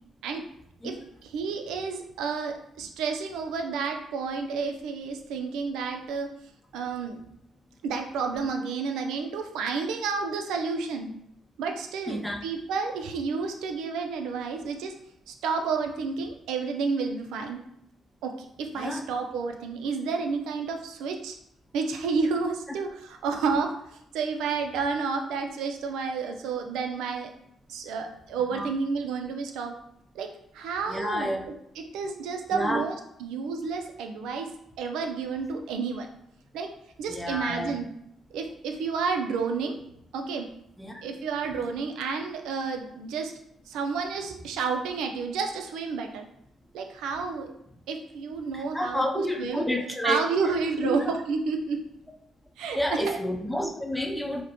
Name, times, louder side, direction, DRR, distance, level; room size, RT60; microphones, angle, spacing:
voice 1, 0.8-6.3 6.7-7.2 7.8-11.1 11.6-14.9 15.3-17.6 18.2-18.3 18.6-21.4 21.7-23.7 24.1-27.3 27.7-29.7 30.1-30.3 30.5-32.9 33.2-34.5 34.8-36.1 36.5-36.7 37.0-37.9 38.3-39.8 40.1-40.4 41.0-43.3 43.7-46.2 46.7-47.5 47.9-49.7 50.0-51.8 52.6-53.2, right 5 dB, 90° right, 4 dB, 0.5 m, -30 dB
voice 2, 12.1-12.4 18.8-19.0 28.5-28.7 30.9-31.4 32.5-32.8 37.1-37.8 40.8-41.0 48.5-50.2 50.8-51.0 52.7-54.4, equal, 5° left, 2 dB, 0.6 m, -29 dB
5.0 x 2.1 x 2.9 m, 0.76 s
cardioid pair, 90°, 0 cm